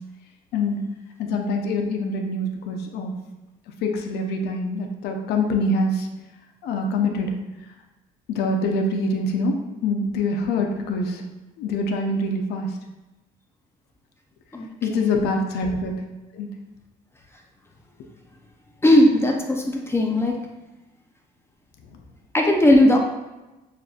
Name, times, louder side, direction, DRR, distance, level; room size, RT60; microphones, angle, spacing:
voice 1, 1.2-3.2 3.8-6.1 6.6-7.3 8.3-11.2 11.6-12.8 14.8-16.0 16.3-16.5, left 2 dB, 75° left, 3 dB, 0.6 m, -25 dB
voice 2, 14.5-15.1 18.8-20.4 22.3-23.0, left 1 dB, 15° left, 1 dB, 0.5 m, -18 dB
6.5 x 2.5 x 2.4 m, 1.0 s
cardioid pair, 110°, 17 cm